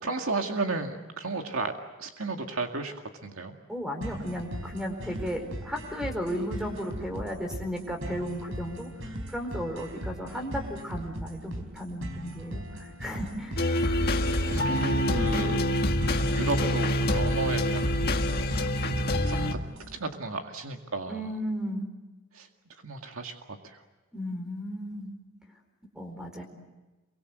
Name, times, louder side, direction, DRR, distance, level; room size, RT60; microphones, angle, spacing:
voice 1, 0.0-1.7 2.0-2.9 3.2-3.5 14.2-15.6 16.2-18.8 19.3-19.6 19.9-21.3 22.3-22.5 22.8-23.8, right 3 dB, 85° right, 4 dB, 2.0 m, -33 dB
voice 2, 3.7-13.6 15.1-15.4 21.1-21.9 24.1-25.1 25.9-26.4, equal, 5° right, 4 dB, 4.5 m, -35 dB
sound 1, 4.0-20.0, equal, 65° right, 4.0 m, -39 dB
sound 2, 13.6-19.5, left 1 dB, 50° left, 1.7 m, -26 dB
27.5 x 24.0 x 8.0 m, 1.1 s
head